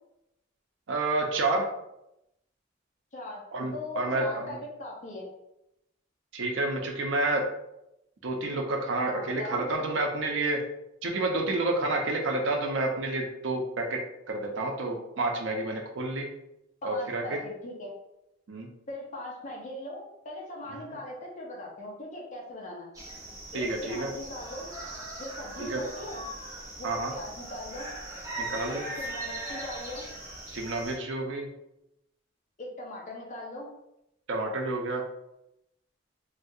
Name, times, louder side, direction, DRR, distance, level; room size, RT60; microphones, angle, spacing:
voice 1, 0.9-1.7 3.5-4.4 6.3-7.4 8.2-10.6 11.0-14.0 14.3-16.3 16.8-17.4 18.5-18.7 23.5-24.1 25.6-25.8 26.8-27.1 28.4-28.8 30.5-31.5 34.3-35.0, right 2 dB, 80° right, 2 dB, 0.5 m, -29 dB
voice 2, 3.7-5.3 9.1-9.6 16.8-17.9 18.9-22.9 23.5-24.7 25.2-26.3 26.8-27.9 28.7-30.1 32.6-33.7, left 1 dB, 40° left, -3 dB, 0.7 m, -40 dB
sound 1, 22.9-31.0, right 2 dB, 20° right, 0.8 m, -40 dB
3.2 x 2.4 x 2.7 m, 0.86 s
head